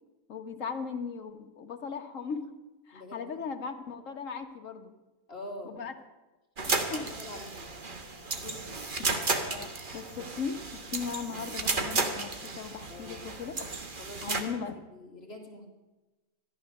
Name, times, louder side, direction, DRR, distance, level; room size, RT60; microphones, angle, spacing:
voice 1, 0.3-2.5 2.9-4.9 5.7-5.9 6.6-7.1 9.0-9.1 9.4-13.6 14.2-14.7, left 6 dB, 65° left, 6 dB, 1.4 m, -38 dB
voice 2, 2.9-3.5 5.3-5.8 6.9-7.9 8.4-8.8 12.9-13.3 14.0-14.6 14.9-15.7, left 1 dB, 45° left, 1 dB, 2.2 m, -45 dB
sound 1, 6.6-14.4, right 3 dB, 40° right, 1.3 m, -33 dB
14.0 x 11.5 x 6.5 m, 1.1 s
omnidirectional pair, 1.5 m